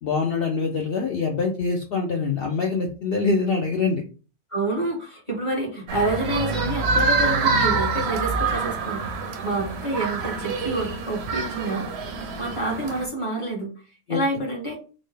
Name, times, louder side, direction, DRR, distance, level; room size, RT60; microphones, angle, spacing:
voice 1, 0.0-4.0 14.1-14.2, left 4 dB, 90° left, 1 dB, 0.5 m, -24 dB
voice 2, 4.5-9.1 9.4-11.8 12.4-13.7 14.1-14.8, right 2 dB, 25° left, -2 dB, 1.0 m, -28 dB
sound 1, 5.9-13.1, right 4 dB, 65° right, 0.7 m, -26 dB
4.1 x 2.0 x 3.2 m, 0.37 s
omnidirectional pair, 1.6 m